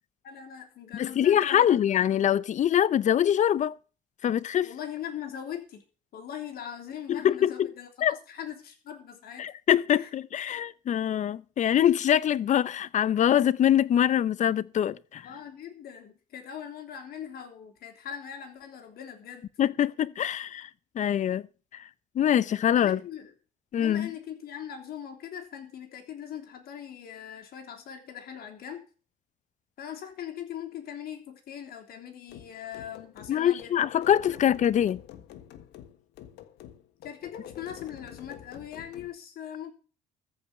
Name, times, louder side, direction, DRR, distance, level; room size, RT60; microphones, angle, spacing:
voice 1, 0.2-1.8 4.6-5.8 6.1-9.5 9.9-10.1 15.2-19.5 22.7-23.3 23.7-28.8 29.8-33.7 37.0-39.7, left 9 dB, 65° left, 3.3 m, -40 dB
voice 2, 0.9-3.8 4.2-4.7 7.1-7.7 8.0-8.2 9.4-15.3 19.6-20.7 20.9-21.4 21.7-21.9 22.1-23.0 23.7-24.1 33.3-35.0, left 10 dB, 45° left, 0.6 m, -24 dB
sound 1, 32.3-39.1, left 11 dB, 85° left, 1.4 m, -47 dB
14.0 x 5.4 x 8.4 m
cardioid pair, 110°, 17 cm